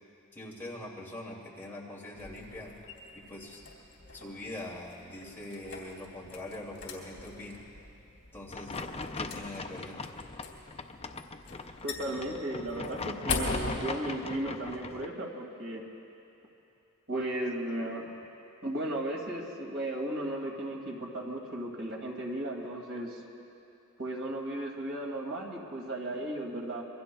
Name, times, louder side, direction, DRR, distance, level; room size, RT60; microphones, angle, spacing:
voice 1, 0.3-2.7 3.1-3.6 4.1-7.6 8.3-8.8 9.2-10.0 12.1-12.2, left 1 dB, 10° left, -5 dB, 2.6 m, -43 dB
sound 1, 2.1-13.8, left 3 dB, 65° left, 3.3 m, -41 dB
sound 2, 8.5-15.1, left 3 dB, 30° left, 0.5 m, -40 dB
voice 2, 11.8-15.8 17.1-18.1 18.6-23.2 24.0-26.8, right 1 dB, 60° right, 0 dB, 2.4 m, -35 dB
27.0 x 23.0 x 2.3 m, 2.9 s
head